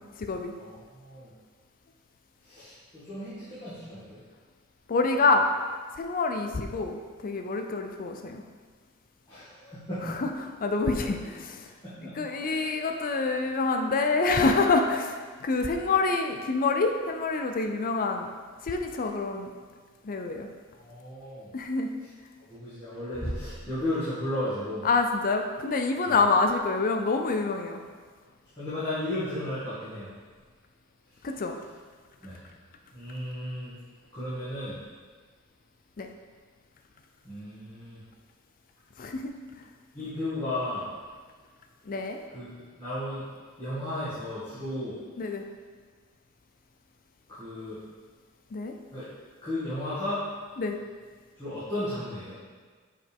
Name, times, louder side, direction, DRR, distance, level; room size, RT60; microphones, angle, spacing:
voice 1, 0.0-0.5 4.9-5.5 6.0-7.0 7.2-8.4 10.0-10.3 10.6-11.7 12.2-18.3 18.6-19.5 20.0-20.5 21.5-21.9 24.8-27.8 31.2-31.6 36.0-36.1 39.0-39.3 41.9-42.2 45.2-45.4 48.5-48.7 50.6-50.8, left 3 dB, 40° left, 4 dB, 0.4 m, -26 dB
voice 2, 0.6-1.3 2.4-4.2 9.3-10.2 11.8-12.2 12.5-12.7 15.6-16.0 20.7-21.5 22.0-22.1 22.5-24.9 26.0-26.2 28.6-30.1 32.2-32.5 32.9-33.8 34.1-34.8 37.2-38.0 39.9-40.9 42.3-42.5 42.8-43.2 43.6-45.0 47.3-47.8 48.9-49.1 49.4-50.2 51.4-52.3, left 1 dB, 20° left, -15 dB, 2.1 m, -34 dB
8.3 x 5.0 x 3.5 m, 1.5 s
head